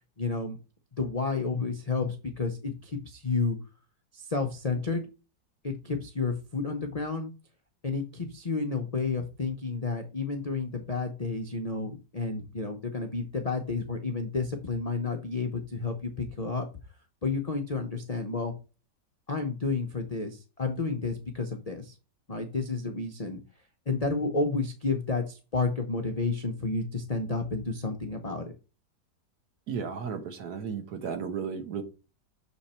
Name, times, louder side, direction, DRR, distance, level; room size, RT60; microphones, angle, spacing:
voice 1, 0.2-0.6 1.0-3.6 4.1-5.1 5.6-7.3 7.8-16.7 17.2-18.5 19.3-21.9 22.3-23.4 23.9-28.5, left 4 dB, 75° left, 0.3 m, -31 dB
voice 2, 29.7-31.8, right 6 dB, 65° right, 1.5 m, -34 dB
7.0 x 3.5 x 4.2 m
omnidirectional pair, 1.9 m